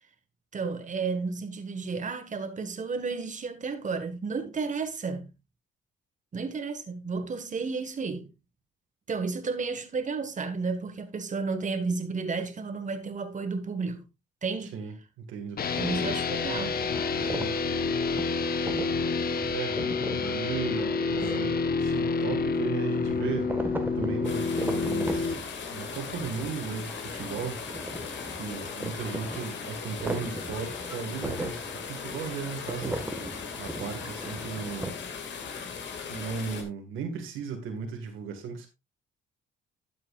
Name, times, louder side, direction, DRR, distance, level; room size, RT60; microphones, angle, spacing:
voice 1, 0.5-5.3 6.3-8.3 9.1-14.1 14.4-14.8 15.8-16.8, right 4 dB, 40° right, 1.5 m, -32 dB
voice 2, 14.7-15.6 17.2-17.6 19.5-19.8 20.1-23.5 24.0-25.4 25.7-27.6 28.4-33.0 33.6-35.0 36.1-38.7, right 6 dB, 90° right, 1.8 m, -36 dB
sound 1, 15.6-25.3, left 4 dB, 50° left, 1.1 m, -28 dB
sound 2, 15.7-34.9, right 1 dB, 10° right, 1.5 m, -39 dB
sound 3, 24.2-36.6, left 6 dB, 65° left, 2.1 m, -38 dB
11.5 x 7.7 x 2.4 m
cardioid pair, 90°, 20 cm